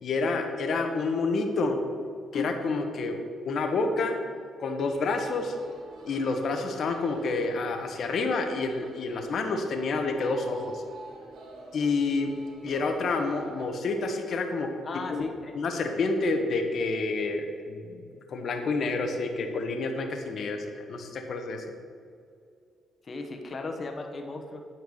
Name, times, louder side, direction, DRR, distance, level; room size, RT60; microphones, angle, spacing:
voice 1, 0.0-1.8 2.3-3.2 3.5-4.2 4.6-5.5 6.0-10.8 11.7-12.3 12.6-14.7 15.1-15.3 15.6-18.0 18.3-21.6, left 3 dB, 60° left, 5 dB, 1.2 m, -28 dB
sound 1, 4.8-13.7, right 2 dB, 70° right, 1.9 m, -47 dB
voice 2, 14.8-15.6 23.0-24.6, left 3 dB, 40° left, 4 dB, 1.2 m, -36 dB
9.6 x 4.6 x 7.0 m, 2.3 s
cardioid pair, 90°, 0 cm